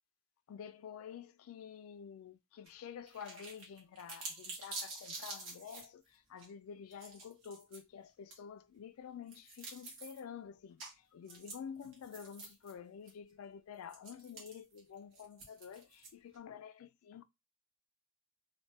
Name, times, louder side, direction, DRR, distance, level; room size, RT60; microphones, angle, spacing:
voice 1, 0.5-17.2, left 7 dB, 85° left, 0.3 m, -49 dB
sound 1, 2.7-2.8 3.1-5.8 6.4-6.5 6.9-7.8 8.3-8.4 9.3-10.2 10.8-10.9 11.3-12.7 13.1-13.2 13.9-16.4, right 3 dB, 75° right, 1.3 m, -48 dB
3.2 x 2.1 x 2.8 m
head